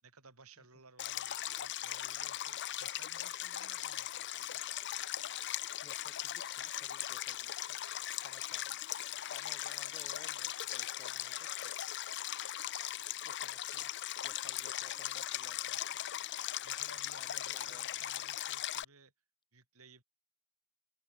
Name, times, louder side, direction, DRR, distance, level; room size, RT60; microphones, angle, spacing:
voice 1, 0.0-4.6 16.6-19.1 19.5-20.0, right 4 dB, 90° right, 7.6 m, -59 dB
Stream, 1.0-18.8, left 13 dB, 55° left, 0.6 m, -39 dB
voice 2, 5.8-7.8 8.1-8.9 9.3-11.7 13.2-13.9 14.2-16.0 17.2-18.0, left 2 dB, 20° left, 6.2 m, -59 dB
head